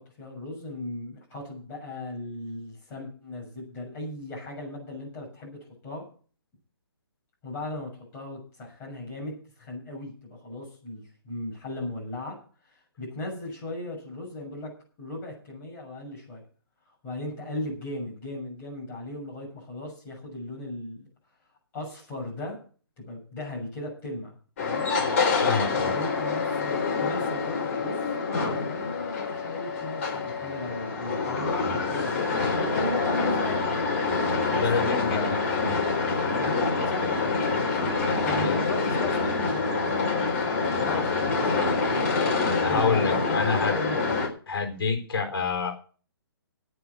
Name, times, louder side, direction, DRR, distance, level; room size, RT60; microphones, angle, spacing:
voice 1, 0.2-6.0 7.4-12.4 12.7-14.7 15.0-16.4 17.0-21.1 21.7-22.6 23.0-24.9 25.7-33.6 34.5-35.7 36.0-41.6 41.9-44.2, left 1 dB, 15° left, -3 dB, 6.9 m, -37 dB
sound 1, 24.6-44.3, left 4 dB, 35° left, 3.8 m, -26 dB
voice 2, 25.4-25.9 34.6-35.4 35.6-35.8 38.3-38.6 42.6-43.7 44.5-45.7, left 4 dB, 70° left, 4 dB, 4.2 m, -27 dB
9.8 x 9.4 x 8.4 m, 0.41 s
hypercardioid pair, 170°, 13 cm